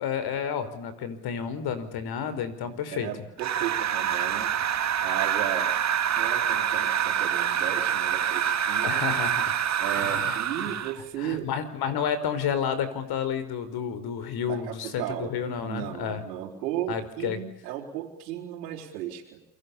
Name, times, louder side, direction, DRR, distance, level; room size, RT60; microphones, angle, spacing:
voice 1, 0.0-3.1 8.8-9.6 9.9-10.8 11.2-16.2 16.9-17.4, left 7 dB, 50° left, 13 dB, 5.2 m, -31 dB
voice 2, 2.6-4.5 5.0-9.1 9.8-11.5 14.5-15.3 15.6-19.4, right 11 dB, 85° right, -4 dB, 4.7 m, -35 dB
sound 1, 3.4-11.0, right 9 dB, 35° right, 2.3 m, -26 dB
28.5 x 24.0 x 7.2 m, 0.81 s
supercardioid pair, 100°, 48 cm